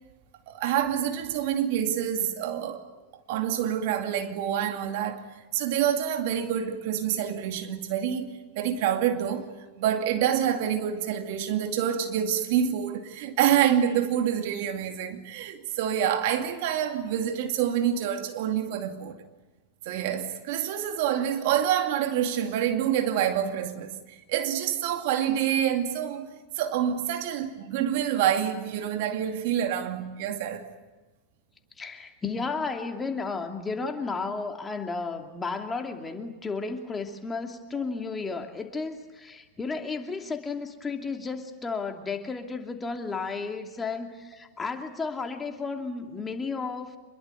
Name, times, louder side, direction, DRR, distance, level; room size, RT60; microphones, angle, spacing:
voice 1, 0.5-2.8 3.3-8.3 8.6-9.5 9.8-19.2 19.8-26.3 26.6-30.7 37.7-37.9, right 9 dB, 55° right, 2.4 m, -27 dB
voice 2, 31.8-47.0, left 4 dB, 15° left, 2.7 m, -33 dB
26.0 x 22.0 x 8.3 m
hypercardioid pair, 95°, 0 cm